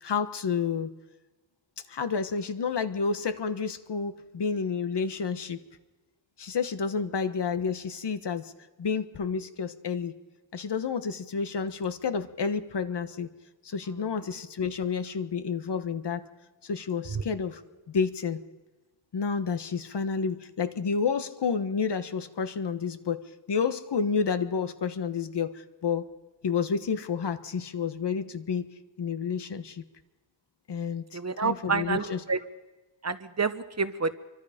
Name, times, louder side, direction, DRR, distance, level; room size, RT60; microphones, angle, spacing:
voice 1, 0.0-0.9 1.9-5.6 6.4-8.5 8.8-10.1 10.5-13.3 13.6-16.3 16.6-17.6 17.9-18.4 19.1-26.1 26.4-28.7 29.0-29.8 30.7-32.3, left 5 dB, 60° left, 10 dB, 1.3 m, -30 dB
voice 2, 31.1-32.4 33.0-34.1, right 4 dB, 35° right, 11 dB, 1.0 m, -28 dB
27.5 x 24.5 x 5.2 m, 1.2 s
wide cardioid pair, 140°, 47 cm